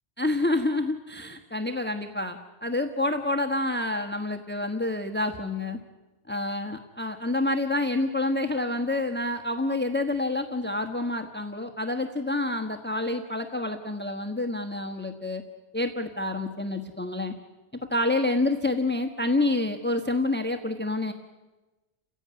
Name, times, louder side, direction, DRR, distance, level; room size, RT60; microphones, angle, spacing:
voice 1, 0.2-5.8 6.3-15.4 15.7-17.3 17.9-21.1, left 2 dB, 10° left, 5 dB, 1.3 m, -28 dB
29.5 x 16.5 x 9.6 m, 1.1 s
omnidirectional pair, 1.2 m